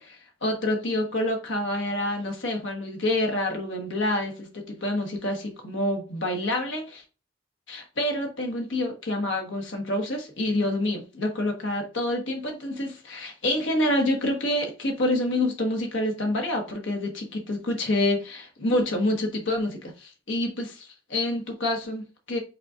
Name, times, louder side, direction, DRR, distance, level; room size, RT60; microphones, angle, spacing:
voice 1, 0.0-7.0 7.7-22.4, left 1 dB, 90° left, 1.3 m, -27 dB
5.6 x 3.8 x 2.4 m
head